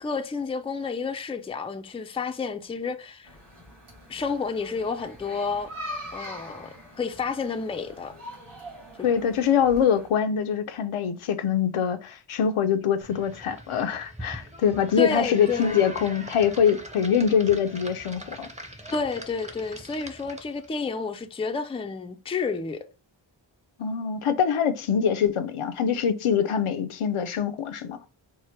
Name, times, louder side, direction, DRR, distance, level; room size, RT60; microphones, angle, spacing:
voice 1, 0.0-3.3 4.1-5.7 6.1-8.2 9.0-9.1 15.0-15.8 18.9-22.9, left 4 dB, 15° left, 0.3 m, -30 dB
Halloween Ambience in Village, 3.2-10.1, equal, 85° right, 2.0 m, -42 dB
voice 2, 9.0-18.5 23.8-28.0, left 7 dB, 85° left, 0.6 m, -24 dB
sound 1, 13.0-20.7, equal, 15° right, 0.7 m, -42 dB
4.7 x 2.1 x 4.3 m
wide cardioid pair, 80°, 49 cm